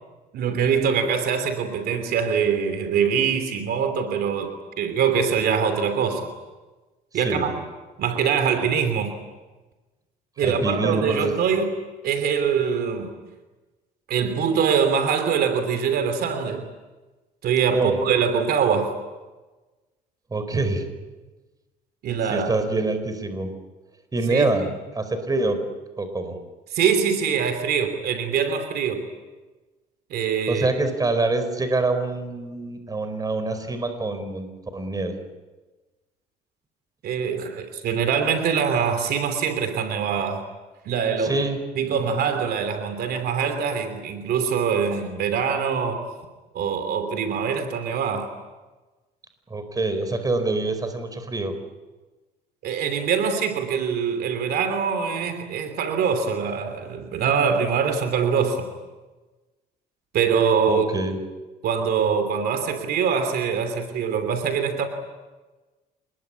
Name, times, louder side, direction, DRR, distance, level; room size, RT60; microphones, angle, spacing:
voice 1, 0.3-6.3 7.1-7.5 8.0-9.1 10.4-11.7 12.0-13.1 14.1-16.7 17.4-18.9 22.0-22.5 24.3-24.5 26.7-29.0 30.1-30.7 37.0-40.4 40.8-41.4 41.7-46.1 46.5-48.3 52.6-58.7 60.1-60.9 61.6-64.9, right 6 dB, 65° right, 8 dB, 3.0 m, -23 dB
voice 2, 7.1-7.6 10.4-11.3 17.7-18.0 20.3-20.9 22.3-23.5 24.1-25.6 26.0-26.4 30.5-34.5 34.7-35.2 41.2-41.6 49.5-51.5 60.7-61.2, right 2 dB, 20° right, 9 dB, 4.6 m, -25 dB
26.5 x 21.0 x 9.8 m, 1.2 s
cardioid pair, 110°, 17 cm